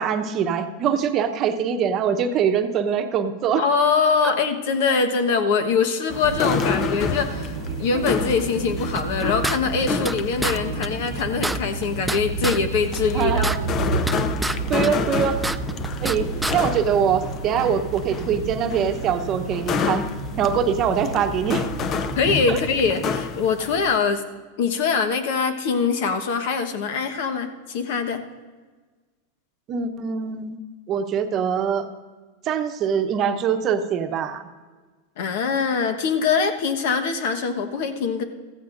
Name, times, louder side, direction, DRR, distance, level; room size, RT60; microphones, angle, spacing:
voice 1, 0.0-3.6 4.2-4.3 13.1-13.5 14.7-15.4 16.0-20.0 20.4-21.7 22.5-22.6 29.7-30.6 30.9-31.9 32.4-34.4, right 7 dB, 40° right, 7 dB, 0.9 m, -23 dB
voice 2, 3.6-7.5 7.8-14.1 22.1-24.2 24.6-28.2 35.2-38.2, left 5 dB, 65° left, 7 dB, 1.2 m, -23 dB
sound 1, 6.1-24.0, left 6 dB, 35° left, 0.7 m, -30 dB
sound 2, 6.2-22.9, right 4 dB, 80° right, 1.1 m, -31 dB
sound 3, 8.9-10.2 10.4-10.6 10.8-10.9 11.2-12.6 12.9-14.6 14.8-16.2 16.4-16.6, right 1 dB, 5° right, 0.4 m, -27 dB
15.0 x 14.5 x 2.6 m, 1.3 s
hypercardioid pair, 115°, 0 cm